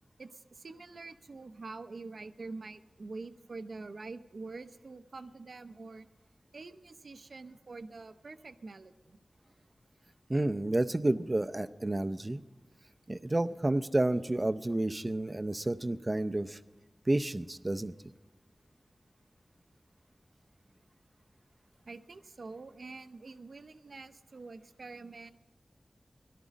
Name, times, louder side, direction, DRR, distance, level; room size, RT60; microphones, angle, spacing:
voice 1, 0.2-6.1 6.5-9.2 21.9-25.3, right 3 dB, 75° right, 10 dB, 0.6 m, -46 dB
voice 2, 10.3-12.4 13.1-16.6 17.1-17.9, right 1 dB, 30° right, 11 dB, 0.5 m, -30 dB
17.0 x 12.0 x 5.2 m, 1.2 s
wide cardioid pair, 90°, 0 cm